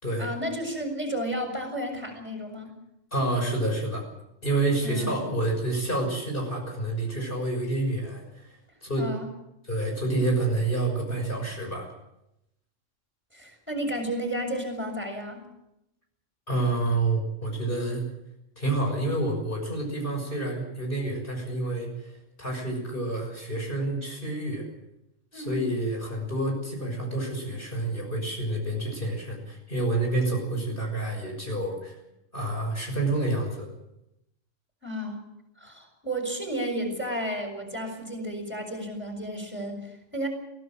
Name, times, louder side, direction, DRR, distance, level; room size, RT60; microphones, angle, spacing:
voice 1, 0.2-2.7 4.8-5.1 9.0-9.3 13.3-15.4 25.3-25.6 34.8-35.2 35.6-40.3, equal, 10° right, 3 dB, 6.9 m, -32 dB
voice 2, 3.1-4.1 4.4-9.1 9.6-11.9 16.5-18.1 18.6-24.7 25.3-32.0 32.3-33.7, right 2 dB, 45° left, 1 dB, 6.6 m, -28 dB
23.5 x 17.0 x 7.7 m, 0.84 s
omnidirectional pair, 1.3 m